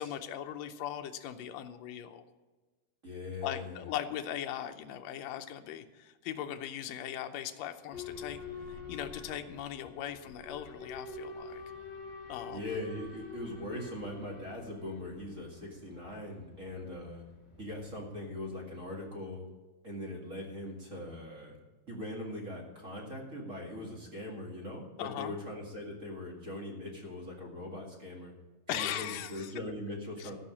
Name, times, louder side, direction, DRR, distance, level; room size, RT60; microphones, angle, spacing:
voice 1, 0.0-2.2 3.4-8.4 8.9-11.6 12.3-12.6 25.0-25.4 28.7-29.5 30.2-30.3, left 10 dB, 85° left, 5 dB, 1.5 m, -39 dB
voice 2, 3.0-3.9 12.5-17.2 17.6-19.4 19.8-21.5 21.9-28.3 28.7-30.3, left 1 dB, 30° right, -2 dB, 1.8 m, -41 dB
Boat Water vehicle / Alarm, 7.9-18.6, left 4 dB, 55° left, 3.0 m, -47 dB
15.0 x 5.6 x 8.5 m, 1.2 s
omnidirectional pair, 4.0 m